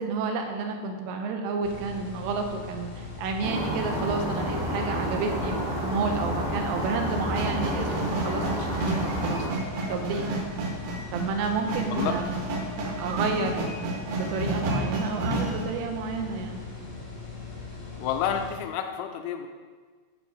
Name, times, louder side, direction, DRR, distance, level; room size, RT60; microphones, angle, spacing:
voice 1, 0.0-5.6 5.8-9.5 9.9-10.3 11.1-12.3 12.8-16.6, right 4 dB, 85° right, 4 dB, 3.4 m, -30 dB
sound 1, 1.6-18.6, left 4 dB, 60° left, 0.9 m, -40 dB
sound 2, 3.4-9.5, equal, 5° right, 0.5 m, -30 dB
sound 3, 6.8-15.6, right 2 dB, 65° right, 3.0 m, -31 dB
voice 2, 18.0-19.5, left 8 dB, 85° left, 6 dB, 2.7 m, -30 dB
10.5 x 5.3 x 4.8 m, 1.5 s
omnidirectional pair, 5.8 m